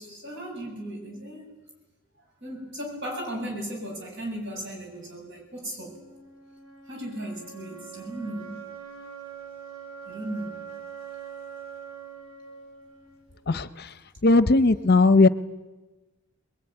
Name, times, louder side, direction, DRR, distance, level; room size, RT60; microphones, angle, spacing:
voice 1, 0.0-1.5 2.4-6.0 6.9-8.6 10.0-10.6, right 1 dB, 55° right, 1 dB, 7.9 m, -36 dB
sound 1, 5.7-13.7, right 7 dB, 80° right, 6.8 m, -43 dB
voice 2, 14.2-15.3, left 3 dB, 45° left, 13 dB, 0.8 m, -17 dB
23.0 x 21.5 x 9.8 m, 1.1 s
head